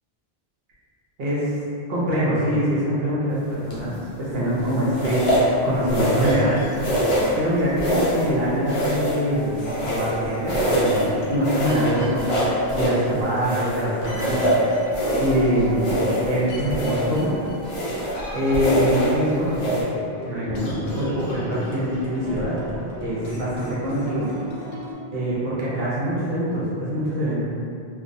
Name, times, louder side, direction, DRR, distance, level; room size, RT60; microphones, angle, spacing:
voice 1, 1.9-3.9 4.3-5.2 5.6-6.6 7.4-12.3 12.7-14.7 15.2-15.9 16.3-17.4 18.3-19.8 20.2-22.5 23.0-24.3 25.1-27.4, equal, 70° right, -8 dB, 0.8 m, -24 dB
sound 1, 3.7-4.0 4.9-5.5 5.9-6.5 6.8-7.4 7.8-8.3 8.7-10.2 10.5-11.1 11.4-13.0 13.4-15.4 15.8-16.4 16.7-17.2 17.6-18.2 18.5-19.2 19.5-19.8, equal, 45° left, 0.4 m, -24 dB
sound 2, 5.2-24.9, equal, 75° left, 0.8 m, -35 dB
2.5 x 2.0 x 2.5 m, 2.5 s
omnidirectional pair, 1.1 m